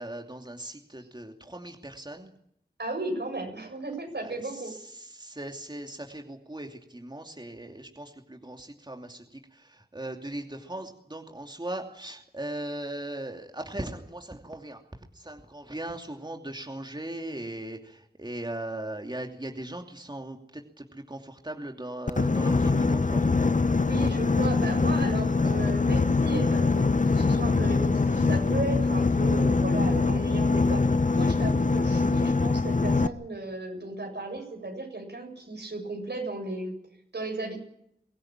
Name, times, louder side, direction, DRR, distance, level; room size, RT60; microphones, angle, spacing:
voice 1, 0.0-2.3 4.2-23.3, right 1 dB, 25° right, 3 dB, 2.7 m, -39 dB
voice 2, 2.8-4.7 23.8-36.7 37.1-37.6, right 2 dB, 85° right, 2 dB, 7.5 m, -35 dB
Boat Water vehicle, 22.1-33.1, left 3 dB, 50° left, 1.0 m, -23 dB
23.5 x 16.0 x 8.9 m, 0.71 s
wide cardioid pair, 45°, 17 cm